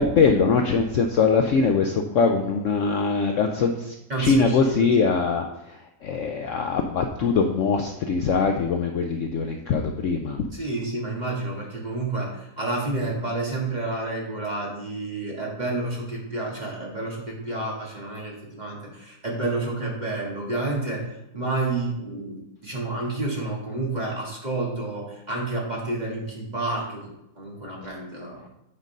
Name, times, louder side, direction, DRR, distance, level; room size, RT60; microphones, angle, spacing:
voice 1, 0.0-10.4, left 5 dB, 65° left, 4 dB, 0.8 m, -22 dB
voice 2, 4.1-4.9 10.5-21.1 21.3-27.1 27.3-28.4, right 2 dB, 30° right, -2 dB, 1.5 m, -29 dB
8.2 x 3.8 x 5.3 m, 0.88 s
omnidirectional pair, 1.7 m